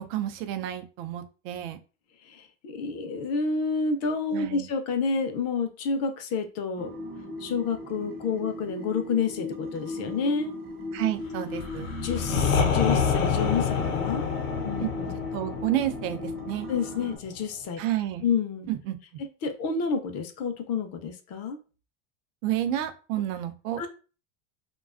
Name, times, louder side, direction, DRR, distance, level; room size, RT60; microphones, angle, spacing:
voice 1, 0.0-1.8 4.3-4.7 10.9-11.9 14.8-14.9 15.3-16.7 17.8-18.2 18.7-19.0 22.4-23.8, right 12 dB, 80° right, 0.5 m, -30 dB
voice 2, 2.2-6.9 7.4-10.5 12.0-14.3 14.6-15.1 16.7-17.8 18.2-18.7 19.4-21.6 23.8-23.9, left 5 dB, 40° left, 0.5 m, -29 dB
sound 1, 6.8-17.2, left 1 dB, 25° right, 0.5 m, -38 dB
sound 2, 11.5-17.3, left 6 dB, 80° left, 0.7 m, -28 dB
2.3 x 2.2 x 2.4 m
supercardioid pair, 125°, 38 cm